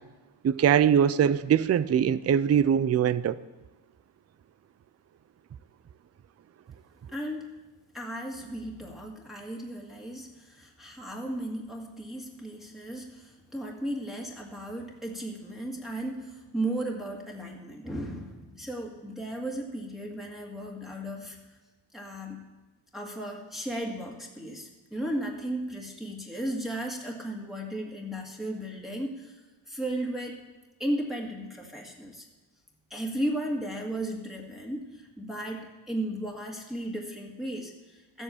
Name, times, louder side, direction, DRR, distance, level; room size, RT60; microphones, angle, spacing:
voice 1, 0.4-3.4, right 8 dB, 35° right, 0.4 m, -22 dB
voice 2, 7.1-7.5 7.9-21.6 21.9-22.4 22.9-30.4 30.8-32.3 32.9-38.2, right 1 dB, ahead, 2.0 m, -35 dB
13.5 x 8.2 x 7.1 m
cardioid pair, 90°, 50 cm